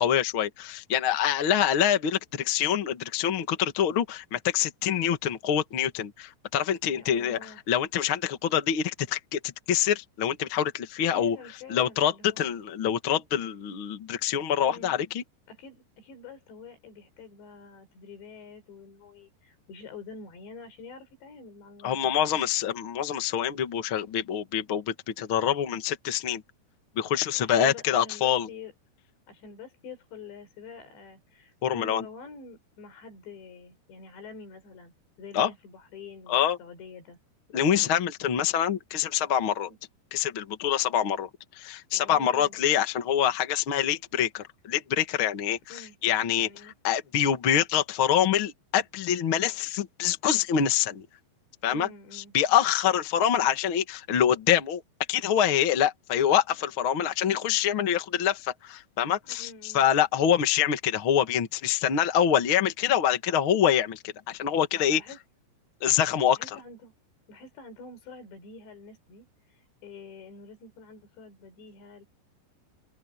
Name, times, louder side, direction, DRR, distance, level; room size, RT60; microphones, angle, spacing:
voice 1, 0.0-11.4 11.7-15.2 21.8-26.4 26.9-28.5 31.6-32.0 35.3-35.5 36.3-36.6 37.5-39.7 40.1-41.3 41.5-51.0 51.6-51.9 52.1-54.8 55.1-65.0 65.8-66.4, left 9 dB, 50° left, 1.5 m, -25 dB
voice 2, 6.9-7.6 11.1-12.4 14.6-15.0 15.5-22.1 27.3-28.7 29.3-37.2 39.7-39.8 41.9-42.6 45.7-46.0 46.4-46.7 51.7-52.3 59.3-59.8 64.9-65.2 66.4-66.9 67.3-72.0, left 4 dB, 75° left, 6.9 m, -47 dB
omnidirectional pair, 5.1 m